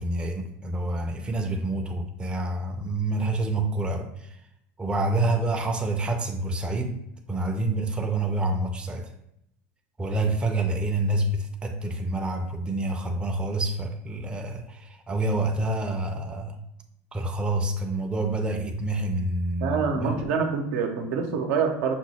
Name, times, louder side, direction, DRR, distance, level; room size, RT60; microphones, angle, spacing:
voice 1, 0.0-4.1 4.8-7.0 7.3-9.1 10.0-16.6 17.1-20.2, right 2 dB, 15° right, 0.5 m, -27 dB
voice 2, 19.6-22.0, right 5 dB, 75° right, 0.7 m, -26 dB
6.0 x 2.0 x 4.2 m
supercardioid pair, 115°, 7 cm